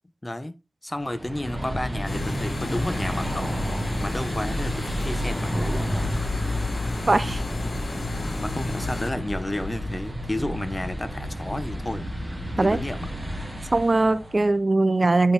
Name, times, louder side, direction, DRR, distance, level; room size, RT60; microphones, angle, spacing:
voice 1, 0.2-0.6 0.8-3.6 4.0-6.0 8.4-12.1 12.6-13.1, left 1 dB, 25° left, 1.1 m, -31 dB
sound 1, 1.0-14.5, equal, 15° right, 2.2 m, -31 dB
sound 2, 2.1-9.1, left 2 dB, 60° left, 0.7 m, -32 dB
voice 2, 7.1-7.4 12.6-12.8 13.7-15.3, right 2 dB, 45° right, 0.6 m, -20 dB
9.4 x 4.4 x 3.5 m
cardioid pair, 45°, 0 cm